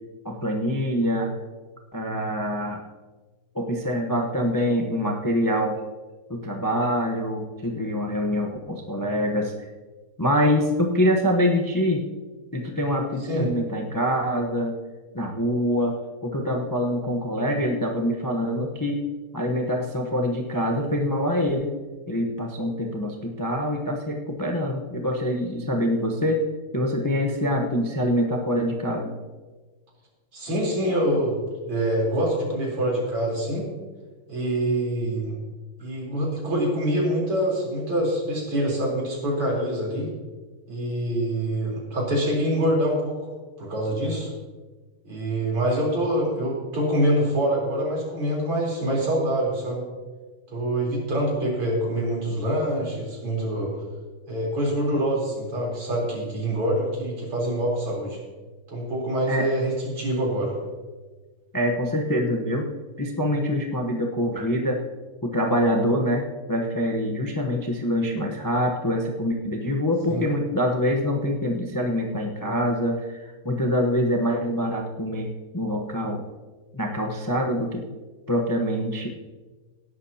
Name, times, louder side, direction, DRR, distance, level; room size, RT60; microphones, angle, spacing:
voice 1, 0.2-1.3 1.9-2.8 3.5-5.8 6.3-9.7 10.2-12.0 12.5-14.8 15.1-16.0 16.2-19.0 19.3-21.7 22.1-26.5 26.7-29.1 59.3-59.5 61.5-62.7 63.0-64.8 65.2-76.2 76.7-77.8 78.3-79.1, equal, 30° left, 1 dB, 0.3 m, -25 dB
voice 2, 30.3-31.4 31.6-33.7 34.3-35.4 35.8-40.1 40.7-43.2 43.6-44.3 45.0-49.8 50.5-53.7 54.3-58.2 58.7-60.5 70.1-70.3, right 1 dB, 80° right, -3 dB, 4.9 m, -25 dB
18.0 x 11.5 x 2.9 m, 1.3 s
omnidirectional pair, 2.4 m